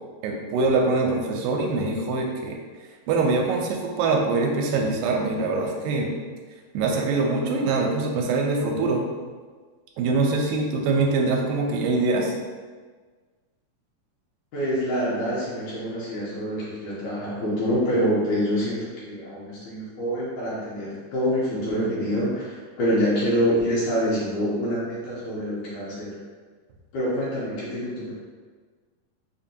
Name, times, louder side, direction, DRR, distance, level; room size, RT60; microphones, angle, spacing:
voice 1, 0.2-2.6 3.1-6.1 6.7-9.0 10.0-12.4, right 3 dB, 85° right, 1 dB, 2.2 m, -23 dB
voice 2, 14.5-26.1 26.9-28.1, equal, 75° left, -7 dB, 2.0 m, -26 dB
5.4 x 2.2 x 2.6 m, 1.4 s
omnidirectional pair, 4.0 m